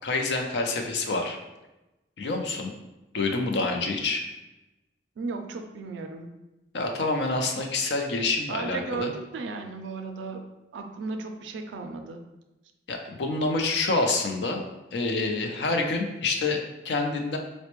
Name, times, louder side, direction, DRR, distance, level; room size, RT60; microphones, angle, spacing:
voice 1, 0.0-1.4 2.2-2.7 3.1-4.3 6.7-9.1 12.9-14.6 14.9-16.6 16.8-17.4, left 3 dB, 70° left, 3 dB, 0.5 m, -27 dB
voice 2, 5.2-6.3 8.5-12.2, right 4 dB, 80° right, 5 dB, 0.4 m, -35 dB
4.0 x 2.1 x 3.0 m, 0.99 s
head